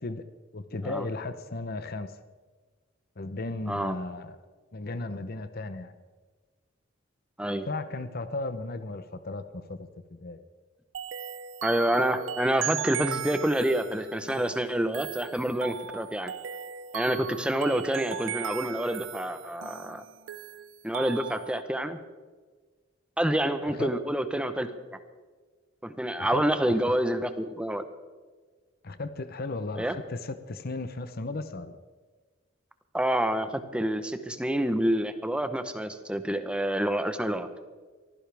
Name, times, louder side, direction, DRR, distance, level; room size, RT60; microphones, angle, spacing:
voice 1, 0.5-2.1 3.2-4.4 4.7-5.9 7.6-10.4 23.7-23.9 26.2-27.0 28.8-31.8, left 2 dB, 50° left, 11 dB, 0.8 m, -35 dB
sound 1, 10.9-21.6, right 9 dB, 80° right, 0.5 m, -38 dB
voice 2, 11.6-16.3 16.9-20.0 20.8-22.0 23.2-25.0 25.8-27.8 29.8-29.9 32.9-37.5, right 1 dB, 5° right, 9 dB, 0.9 m, -28 dB
23.5 x 15.5 x 3.5 m, 1.4 s
head